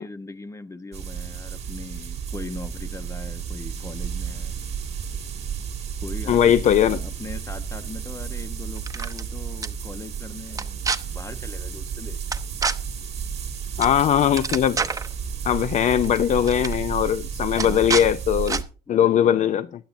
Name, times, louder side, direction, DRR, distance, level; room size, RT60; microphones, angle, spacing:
voice 1, 0.0-4.6 6.0-12.2 17.6-18.2 18.9-19.7, left 3 dB, 15° left, 0.9 m, -40 dB
sound 1, 0.9-18.6, right 7 dB, 40° right, 1.8 m, -32 dB
voice 2, 6.3-7.0 13.8-14.8 15.5-18.6 18.9-19.7, left 10 dB, 45° left, 0.4 m, -20 dB
sound 2, 8.8-9.2 9.6-9.7 10.5-11.0 12.3-12.7 13.8-14.0 14.2-15.1 16.0-16.2 16.4-16.7 17.6-18.1 18.5-18.6, right 4 dB, 20° right, 0.8 m, -27 dB
15.5 x 10.5 x 2.6 m
cardioid pair, 110°, 17 cm